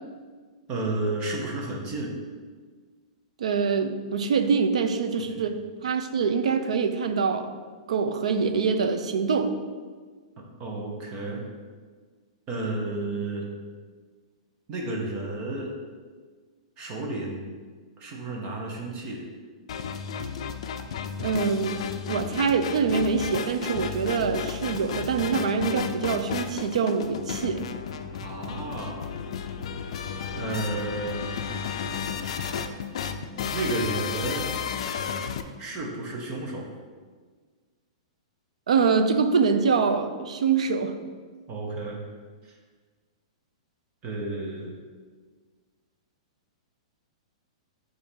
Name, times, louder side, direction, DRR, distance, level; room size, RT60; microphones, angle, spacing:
voice 1, 0.7-2.1 5.2-5.5 10.6-11.4 12.5-13.5 14.7-15.7 16.8-17.4 18.0-19.2 28.2-29.1 29.8-29.9 30.3-31.2 33.5-34.5 35.6-36.7 41.5-42.0 42.4-42.5 44.0-44.7, right 2 dB, 25° right, -1 dB, 0.9 m, -32 dB
voice 2, 3.4-7.5 7.9-9.5 21.2-21.8 22.1-27.6 38.7-40.9, right 5 dB, 90° right, 7 dB, 0.6 m, -24 dB
sound 1, 19.7-35.4, left 7 dB, 60° left, 0.4 m, -33 dB
6.9 x 2.7 x 5.4 m, 1.5 s
supercardioid pair, 165°, 3 cm